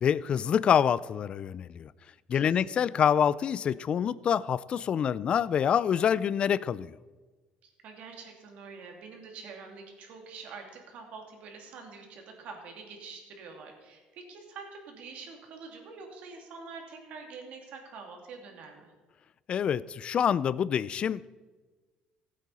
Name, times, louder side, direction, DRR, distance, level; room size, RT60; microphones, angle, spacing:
voice 1, 0.0-1.9 2.3-6.9 19.5-21.4, left 8 dB, 45° left, 0.4 m, -26 dB
voice 2, 2.4-2.8 7.6-18.9, right 4 dB, 65° right, 2.7 m, -46 dB
16.0 x 8.3 x 4.2 m
cardioid pair, 110°, 3 cm